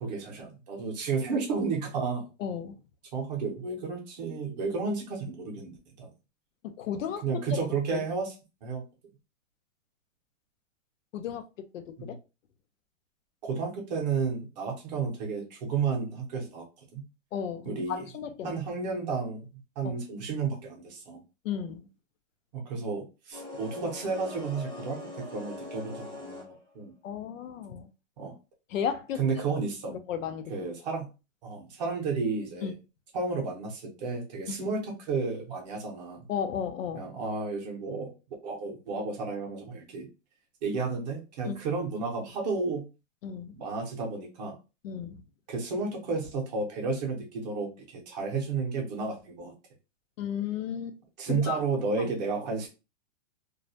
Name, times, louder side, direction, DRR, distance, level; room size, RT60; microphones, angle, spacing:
voice 1, 0.0-2.3 3.1-6.1 7.2-8.3 8.6-8.8 12.0-12.2 13.4-16.7 16.9-17.0 17.6-18.0 18.4-19.5 19.8-21.2 22.5-26.5 26.7-26.9 28.2-28.3 29.2-30.0 30.5-31.1 31.4-32.7 33.1-36.2 36.9-38.1 38.4-40.1 40.6-42.9 43.5-44.6 45.5-49.5 51.2-52.7, right 4 dB, 35° right, 0.6 m, -32 dB
voice 2, 2.4-2.7 6.6-7.2 7.9-8.0 11.1-12.2 17.3-18.6 19.8-19.9 21.4-21.8 27.0-27.9 28.7-29.2 29.9-30.5 32.6-32.7 34.5-34.6 36.3-37.1 41.5-41.6 43.2-43.5 44.8-45.2 50.2-51.0 51.3-51.6 52.0-52.1, left 8 dB, 80° left, 0.6 m, -34 dB
sound 1, 23.3-26.8, left 2 dB, 5° left, 0.5 m, -42 dB
2.3 x 2.0 x 2.6 m
hypercardioid pair, 160°, 38 cm